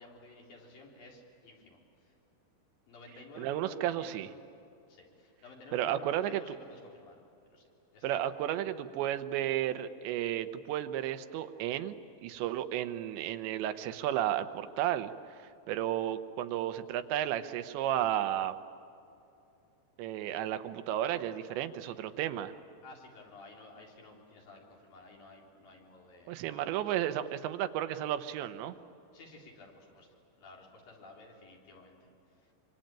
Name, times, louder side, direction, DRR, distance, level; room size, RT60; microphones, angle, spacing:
voice 1, 0.0-2.2 2.9-4.5 4.9-7.7 7.9-8.6 22.8-27.1 29.1-30.1 30.4-32.0 32.3-32.5, left 2 dB, 55° left, -1 dB, 5.3 m, -53 dB
voice 2, 3.4-4.3 5.7-6.4 8.0-12.0 12.2-18.6 20.0-22.5 26.3-28.8, right 12 dB, 85° right, 10 dB, 3.2 m, -33 dB
26.0 x 25.0 x 9.0 m, 2.7 s
omnidirectional pair, 5.0 m